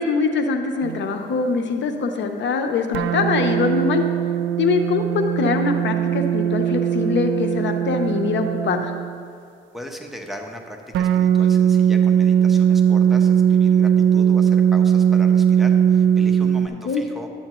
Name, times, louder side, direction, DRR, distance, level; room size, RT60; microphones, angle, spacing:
voice 1, 0.0-4.0 4.6-8.9 16.8-17.0, left 4 dB, 65° left, 5 dB, 0.8 m, -23 dB
sound 1, 0.8-1.2 2.9-9.2 10.9-16.7, right 8 dB, 75° right, 0.4 m, -19 dB
voice 2, 9.7-17.3, equal, ahead, 2 dB, 1.0 m, -38 dB
10.5 x 8.6 x 3.0 m, 2.5 s
cardioid pair, 90°, 20 cm